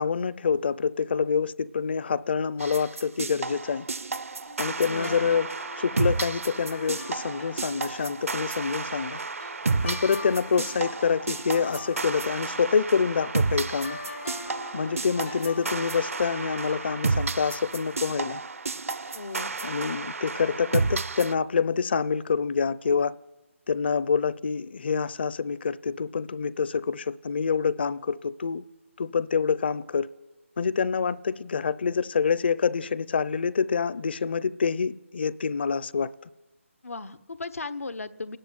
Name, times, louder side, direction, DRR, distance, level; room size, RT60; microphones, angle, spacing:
voice 1, 0.0-3.9 4.6-5.5 5.8-9.2 9.8-14.0 14.7-18.4 19.6-23.1 23.7-28.6 29.0-30.1 30.6-36.1, left 6 dB, 50° left, 0.6 m, -26 dB
sound 1, 2.6-21.3, right 4 dB, 85° right, 0.7 m, -31 dB
sound 2, 4.5-17.1, left 2 dB, 70° left, 2.0 m, -44 dB
voice 2, 4.9-5.2 19.1-19.5 36.8-38.4, left 3 dB, 85° left, 1.1 m, -36 dB
28.5 x 10.0 x 9.4 m
hypercardioid pair, 165°, 7 cm